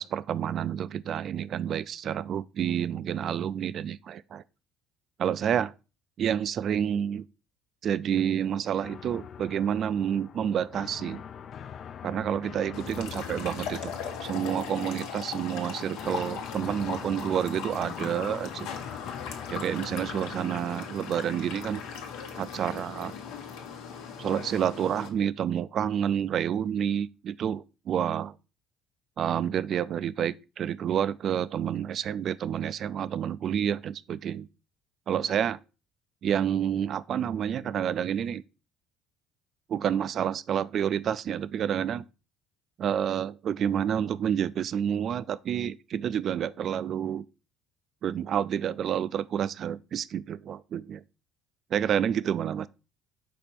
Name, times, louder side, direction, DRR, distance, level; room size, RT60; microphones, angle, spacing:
voice 1, 0.0-4.4 5.2-5.7 6.2-7.3 7.8-11.2 12.0-13.9 14.2-18.7 19.5-21.8 22.4-23.1 24.2-28.3 29.2-34.5 35.1-35.6 36.2-38.4 39.7-42.0 42.8-47.2 48.0-51.0 51.7-52.7, right 9 dB, 45° right, 0.3 m, -29 dB
sound 1, 8.8-24.7, left 8 dB, 40° left, 0.3 m, -45 dB
sound 2, 12.7-25.1, left 6 dB, 85° left, 1.1 m, -39 dB
5.2 x 4.1 x 4.3 m
cardioid pair, 140°, 0 cm